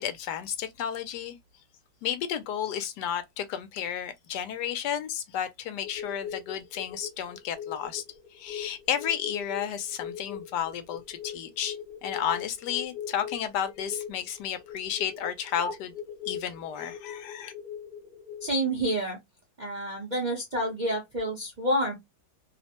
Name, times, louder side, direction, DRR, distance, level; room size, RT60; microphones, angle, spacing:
voice 1, 0.0-1.4 2.0-8.0 8.3-11.8 12.0-15.9 16.3-17.5, left 9 dB, 75° left, 1.1 m, -32 dB
sound 1, 5.8-18.6, left 7 dB, 50° left, 0.7 m, -40 dB
voice 2, 18.4-19.2 19.6-22.0, right 1 dB, 45° right, 0.6 m, -28 dB
3.0 x 2.0 x 2.7 m
omnidirectional pair, 1.9 m